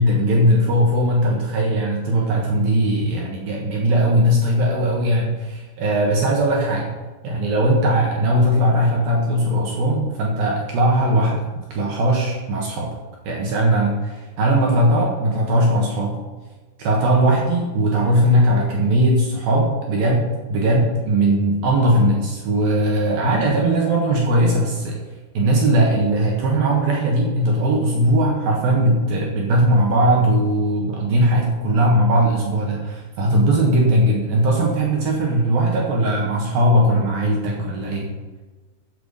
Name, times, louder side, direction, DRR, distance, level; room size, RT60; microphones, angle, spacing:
voice 1, 0.0-6.9 7.2-12.9 13.2-16.1 16.8-25.0 25.3-38.1, right 1 dB, 65° right, -2 dB, 3.0 m, -19 dB
14.5 x 7.1 x 5.5 m, 1.3 s
omnidirectional pair, 5.0 m